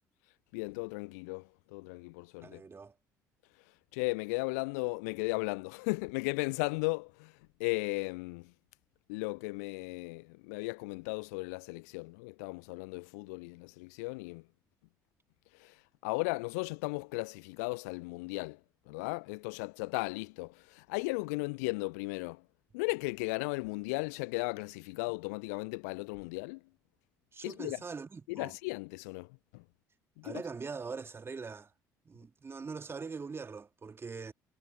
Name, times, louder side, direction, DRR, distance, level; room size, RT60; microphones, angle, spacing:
voice 1, 0.5-1.4 1.7-2.6 3.9-7.3 7.6-8.5 9.1-14.4 15.6-15.7 16.0-18.6 18.9-22.4 22.7-26.6 27.4-27.8 28.3-29.3 29.5-29.6 30.2-30.4, left 28 dB, 65° left, 0.5 m, -36 dB
voice 2, 2.4-2.9 27.3-28.6 30.2-31.7 32.1-34.3, right 5 dB, 25° right, 2.0 m, -42 dB
figure-of-eight pair, 55°, 9 cm